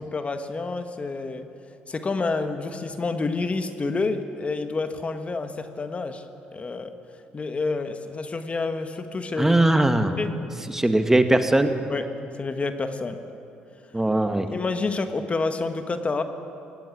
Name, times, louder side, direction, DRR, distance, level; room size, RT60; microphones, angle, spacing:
voice 1, 0.0-1.5 1.9-6.2 6.5-6.9 7.3-9.6 10.2-10.4 11.9-12.0 12.4-13.2 14.5-16.2, left 3 dB, 35° left, 8 dB, 1.5 m, -28 dB
voice 2, 9.4-10.2 10.7-11.7 13.9-14.5, right 1 dB, 10° right, 8 dB, 1.6 m, -20 dB
17.5 x 17.0 x 9.8 m, 2.7 s
hypercardioid pair, 55°, 4 cm